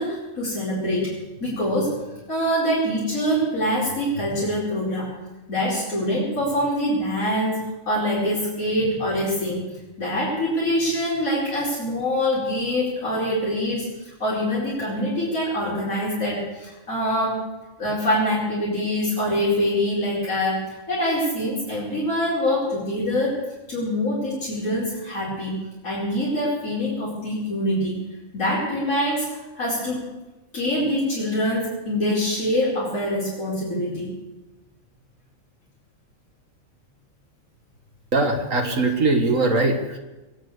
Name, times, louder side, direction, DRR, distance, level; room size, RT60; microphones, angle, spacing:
voice 1, 0.0-2.0 2.3-5.1 5.5-9.7 10.0-17.4 17.8-25.6 25.8-28.0 28.3-29.3 29.6-30.1 30.5-34.2, equal, 85° left, -8 dB, 5.3 m, -24 dB
voice 2, 38.1-40.0, right 2 dB, 70° right, 3 dB, 2.1 m, -21 dB
22.0 x 9.0 x 6.6 m, 1.1 s
omnidirectional pair, 1.4 m